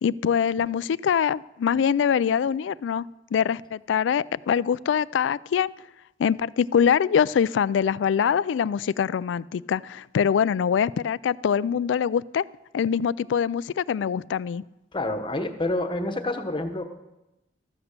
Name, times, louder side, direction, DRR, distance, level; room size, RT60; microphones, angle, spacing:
voice 1, 0.0-3.1 3.3-5.7 6.2-12.4 12.7-14.6, left 7 dB, 75° left, 20 dB, 0.3 m, -24 dB
voice 2, 14.9-16.8, left 2 dB, 25° left, 6 dB, 1.1 m, -28 dB
13.5 x 7.9 x 6.7 m, 0.95 s
head